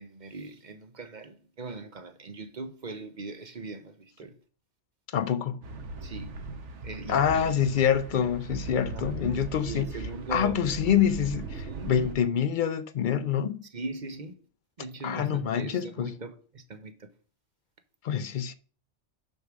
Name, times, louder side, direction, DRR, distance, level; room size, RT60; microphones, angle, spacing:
voice 1, 0.0-4.4 6.0-6.3 6.8-7.7 8.9-9.3 9.6-10.6 11.6-12.0 13.7-14.3 14.8-17.1, right 3 dB, 45° right, 0.9 m, -40 dB
voice 2, 5.1-5.6 7.1-9.9 10.3-13.7 15.0-16.1 18.0-18.5, left 8 dB, 60° left, 0.5 m, -26 dB
sound 1, 5.6-12.1, right 3 dB, 75° right, 1.3 m, -39 dB
6.6 x 5.4 x 6.1 m
omnidirectional pair, 1.2 m